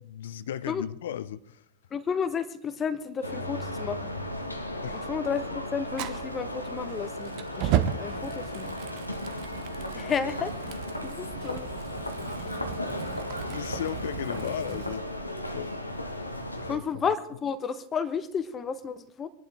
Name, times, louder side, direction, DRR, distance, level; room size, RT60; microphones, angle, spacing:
voice 1, 0.0-1.6 4.8-5.1 13.4-15.1 15.5-15.8 16.4-16.8, left 10 dB, 60° left, 0.8 m, -36 dB
voice 2, 1.9-4.1 4.9-8.8 9.9-11.7 16.6-19.3, left 6 dB, 20° left, 1.1 m, -32 dB
sound 1, 3.2-16.8, left 1 dB, 85° left, 1.3 m, -35 dB
Fire, 5.9-14.9, right 11 dB, 45° right, 1.0 m, -35 dB
24.0 x 11.0 x 3.4 m
figure-of-eight pair, 90°, 0 cm